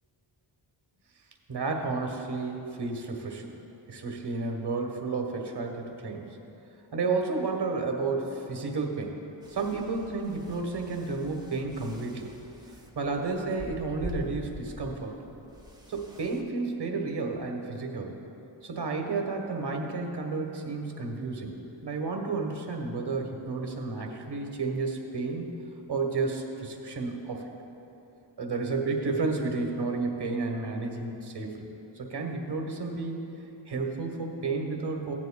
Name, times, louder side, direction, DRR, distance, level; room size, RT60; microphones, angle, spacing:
voice 1, 1.5-3.5 3.9-6.3 6.9-9.2 9.5-12.3 12.9-15.1 15.9-18.1 18.6-21.6 21.8-25.5 25.9-27.5 28.4-31.7 31.9-33.2 33.7-35.1, right 3 dB, 55° right, 2 dB, 1.3 m, -31 dB
sound 1, 9.4-16.4, equal, 10° right, 0.9 m, -45 dB
16.0 x 9.9 x 2.2 m, 2.9 s
wide cardioid pair, 95°, 49 cm